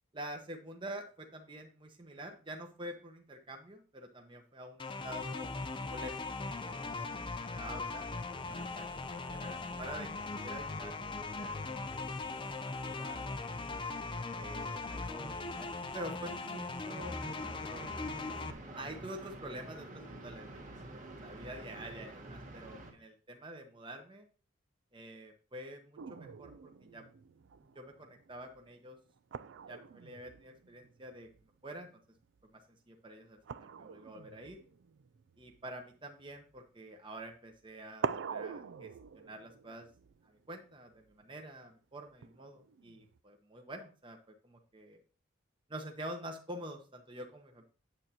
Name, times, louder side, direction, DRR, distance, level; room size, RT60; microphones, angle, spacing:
voice 1, 0.1-5.5 5.9-6.3 6.6-8.1 8.5-12.0 12.6-13.3 14.3-17.9 18.7-24.3 24.9-27.0 27.7-29.0 29.3-31.3 31.6-31.9 32.4-32.5 32.9-34.6 35.4-38.9 39.1-39.9 40.2-44.2 44.4-45.0 45.7-47.6, right 1 dB, 25° right, 3 dB, 0.9 m, -47 dB
sound 1, 4.8-18.5, left 3 dB, 25° left, 0.5 m, -39 dB
sound 2, 16.9-22.9, right 2 dB, 40° right, 1.7 m, -48 dB
sound 3, 26.0-31.9 32.1-32.5 33.4-36.7 37.5-37.6 38.0-41.2 42.2-43.2, right 6 dB, 65° right, 0.4 m, -45 dB
8.9 x 7.9 x 2.9 m, 0.36 s
head